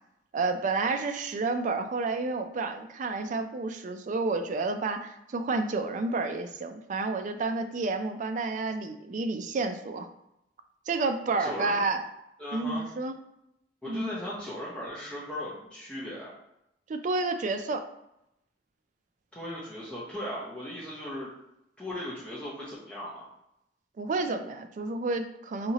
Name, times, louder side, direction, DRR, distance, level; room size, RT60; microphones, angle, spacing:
voice 1, 0.3-10.1 10.9-12.0 12.5-13.2 13.8-14.1 16.9-17.8 24.0-25.7, right 3 dB, 45° right, 7 dB, 0.3 m, -30 dB
voice 2, 11.4-11.8 12.4-12.9 13.8-16.3 19.3-21.3 21.8-23.2, left 1 dB, 5° left, -8 dB, 0.7 m, -37 dB
4.2 x 2.8 x 2.8 m, 0.83 s
head